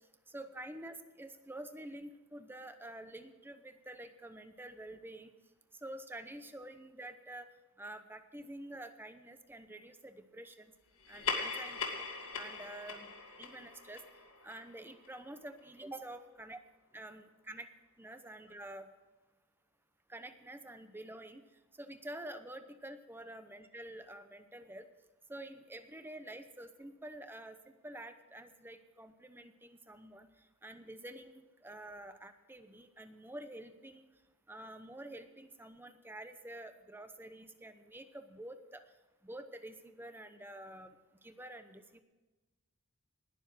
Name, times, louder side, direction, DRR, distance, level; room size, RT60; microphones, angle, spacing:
voice 1, 0.3-5.3 5.8-7.5 7.8-10.7 11.1-12.0 12.4-13.1 13.4-14.0 14.4-16.6 16.9-17.7 18.0-18.9 20.1-21.4 21.8-24.8 25.3-27.6 27.8-30.3 30.6-34.0 34.5-38.8 39.2-40.9 41.2-42.0, right 1 dB, 10° right, 9 dB, 0.8 m, -48 dB
sound 1, 11.0-15.9, left 5 dB, 70° left, 2.1 m, -41 dB
19.5 x 7.1 x 6.2 m, 1.2 s
head